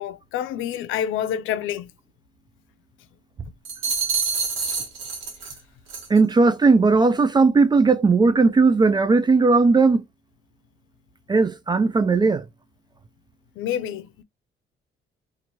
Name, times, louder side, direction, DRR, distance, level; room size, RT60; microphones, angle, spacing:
voice 1, 0.0-1.9 13.6-14.2, left 10 dB, 85° left, 0.4 m, -28 dB
sound 1, 3.6-5.6 5.9-6.2, right 5 dB, 80° right, 1.2 m, -27 dB
voice 2, 6.1-10.0 11.3-12.4, right 4 dB, 20° right, 0.3 m, -17 dB
3.0 x 2.5 x 2.9 m
cardioid pair, 90°, 20 cm